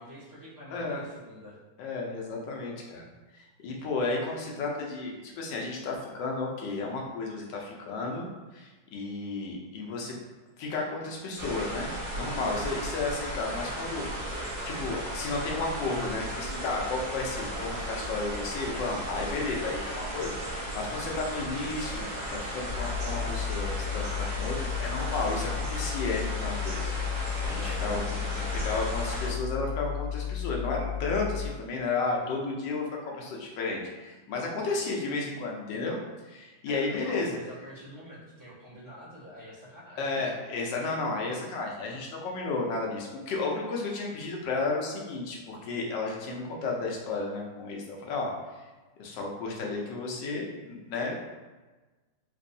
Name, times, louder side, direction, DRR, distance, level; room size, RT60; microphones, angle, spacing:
voice 1, 0.0-1.6 27.5-28.5 36.6-40.2, equal, 15° right, -11 dB, 1.0 m, -46 dB
voice 2, 0.7-1.0 1.8-3.1 3.3-8.3 8.5-10.2 10.6-14.1 14.6-26.9 27.4-36.0 36.2-37.4 40.0-48.3 49.0-51.3, left 3 dB, 80° left, -1 dB, 1.4 m, -33 dB
sound 1, 11.4-29.3, right 1 dB, 80° right, 1.7 m, -35 dB
sound 2, 22.6-31.5, left 9 dB, 55° right, 1.3 m, -34 dB
4.0 x 2.6 x 2.6 m, 1.2 s
omnidirectional pair, 1.9 m